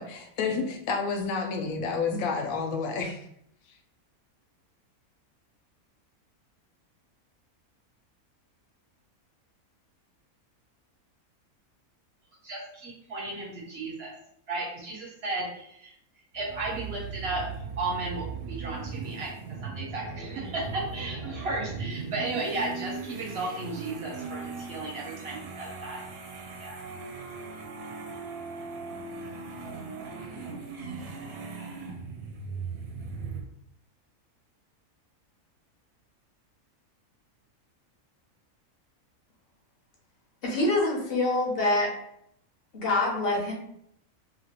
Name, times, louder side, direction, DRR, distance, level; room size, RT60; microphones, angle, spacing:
voice 1, 0.0-3.3, left 4 dB, 75° left, 4 dB, 0.9 m, -30 dB
voice 2, 12.4-14.1 14.5-15.9 16.3-17.4 17.8-19.3 19.6-26.0 26.6-26.8, right 2 dB, 50° right, -3 dB, 1.0 m, -34 dB
sound 1, 16.3-33.4, right 4 dB, 75° right, 1.0 m, -38 dB
voice 3, 40.4-41.9 42.7-43.5, left 2 dB, 50° left, -2 dB, 0.9 m, -25 dB
2.9 x 2.4 x 2.8 m, 0.72 s
omnidirectional pair, 1.5 m